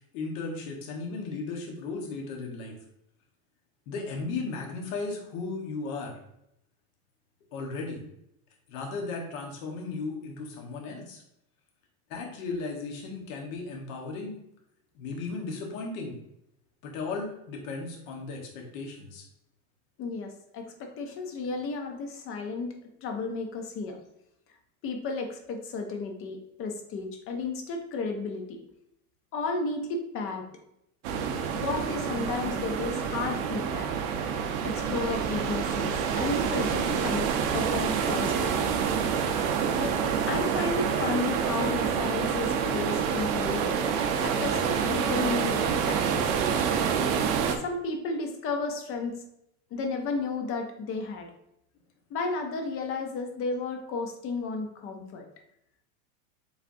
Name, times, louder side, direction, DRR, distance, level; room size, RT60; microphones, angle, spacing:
voice 1, 0.1-2.7 3.9-6.2 7.5-8.0 8.7-11.2 12.1-14.4 14.9-16.1 16.8-19.3, left 3 dB, 65° left, 0 dB, 1.3 m, -35 dB
voice 2, 20.0-22.7 23.0-24.0 24.8-28.6 29.3-30.5 31.5-33.9 34.6-38.8 39.8-40.0 40.3-43.8 44.2-46.3 47.6-49.2 49.7-51.3 52.1-55.3, left 3 dB, 30° left, 4 dB, 0.6 m, -33 dB
sound 1, 31.0-47.6, right 7 dB, 55° right, 0.6 m, -27 dB
5.1 x 3.3 x 2.6 m, 0.80 s
supercardioid pair, 145°, 43 cm